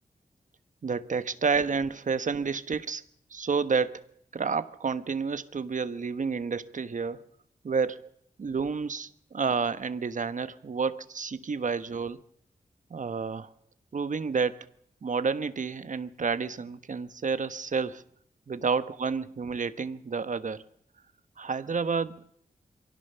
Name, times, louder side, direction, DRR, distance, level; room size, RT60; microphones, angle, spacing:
voice 1, 0.8-3.0 3.3-7.3 7.6-8.1 8.4-12.2 12.9-13.5 13.9-14.7 15.0-18.0 18.5-20.6 21.4-22.3, right 5 dB, 60° right, 1.2 m, -30 dB
23.5 x 17.0 x 7.0 m
cardioid pair, 60°, 15 cm